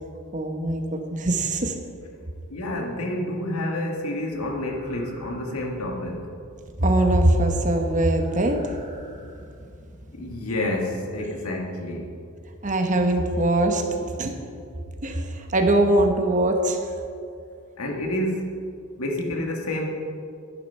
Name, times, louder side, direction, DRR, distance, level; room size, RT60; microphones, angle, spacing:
voice 1, 0.3-1.8 6.8-8.8 12.6-13.9 14.2-14.3 15.0-16.9, right 1 dB, 35° right, 4 dB, 1.1 m, -22 dB
voice 2, 2.5-6.3 10.1-12.1 17.8-18.7 19.0-19.9, left 1 dB, 85° left, 1 dB, 1.9 m, -29 dB
sound 1, 4.3-11.4, right 1 dB, 25° left, 3.4 m, -48 dB
12.5 x 10.5 x 5.5 m, 2.4 s
head